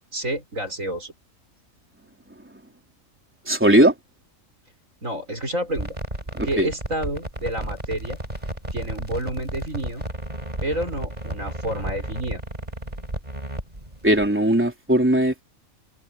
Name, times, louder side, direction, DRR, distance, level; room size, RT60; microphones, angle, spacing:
voice 1, 0.1-1.1 5.0-6.0 6.4-8.2 8.7-10.0 10.6-12.4, right 1 dB, 70° right, 7.3 m, -29 dB
voice 2, 3.5-3.9 6.4-6.7 14.0-15.4, right 1 dB, 10° right, 3.4 m, -18 dB
sound 1, 5.7-14.3, right 1 dB, 30° right, 5.6 m, -33 dB
open air
omnidirectional pair, 1.4 m